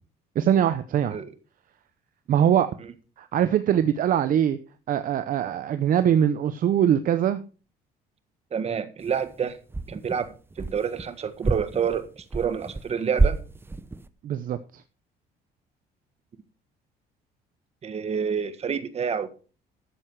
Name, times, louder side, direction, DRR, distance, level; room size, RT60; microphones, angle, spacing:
voice 1, 0.4-1.2 2.3-2.7 3.2-4.6 4.9-7.4 14.2-14.8, right 9 dB, 55° right, 0.8 m, -22 dB
voice 2, 8.5-9.6 9.9-13.4 17.8-19.3, right 7 dB, 40° right, 1.6 m, -28 dB
sound 1, 9.0-9.4 9.7-11.1 11.4-12.9 13.2-14.1, right 3 dB, 15° right, 0.7 m, -28 dB
12.5 x 7.8 x 4.7 m
cardioid pair, 110°, 17 cm